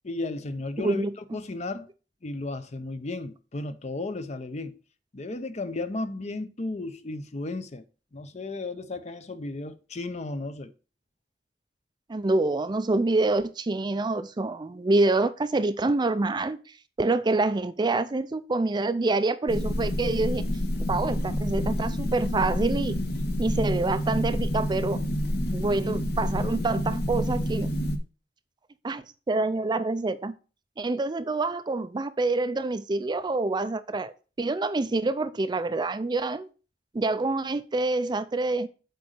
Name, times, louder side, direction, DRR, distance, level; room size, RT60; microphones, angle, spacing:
voice 1, 0.0-1.0 1.3-1.9 2.2-4.8 5.1-7.8 8.1-10.7, left 2 dB, 40° left, 0.7 m, -34 dB
voice 2, 0.8-1.1 12.1-16.6 17.0-20.4 20.9-23.0 23.4-25.0 25.5-27.7 28.8-30.3 30.8-34.1 34.4-36.5 36.9-38.7, right 2 dB, 25° right, 0.4 m, -26 dB
sound 1, 19.5-28.0, equal, 65° left, 1.2 m, -28 dB
7.9 x 4.0 x 6.5 m
head